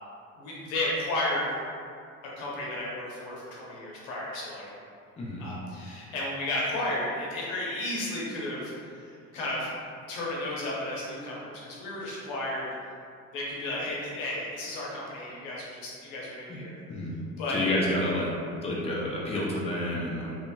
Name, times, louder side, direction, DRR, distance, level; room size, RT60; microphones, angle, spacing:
voice 1, 0.4-1.5 2.4-4.6 5.4-8.7 9.3-9.7 10.1-12.7 13.3-16.8 17.4-17.6, left 1 dB, 80° left, -5 dB, 1.0 m, -33 dB
voice 2, 17.5-18.3 18.6-20.3, left 1 dB, 15° left, -5 dB, 0.6 m, -29 dB
2.8 x 2.8 x 2.2 m, 2.3 s
supercardioid pair, 85°, 39 cm